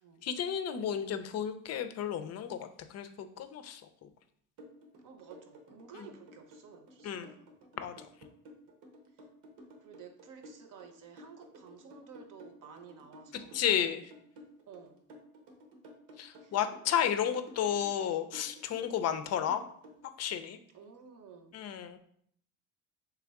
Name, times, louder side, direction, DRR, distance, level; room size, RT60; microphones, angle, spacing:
voice 1, 0.2-2.7 2.9-3.8 6.0-6.1 7.0-7.3 7.8-7.9 13.3-14.0 16.2-19.6 20.2-20.6 21.5-22.0, left 9 dB, 40° left, 10 dB, 0.5 m, -32 dB
sound 1, 4.6-20.0, equal, 80° right, 1.1 m, -53 dB
voice 2, 5.0-7.5 9.8-13.7 14.7-15.0 16.4-16.6 20.7-21.6, right 6 dB, 50° right, 6 dB, 0.8 m, -53 dB
3.5 x 3.3 x 3.5 m, 0.65 s
supercardioid pair, 90°, 40 cm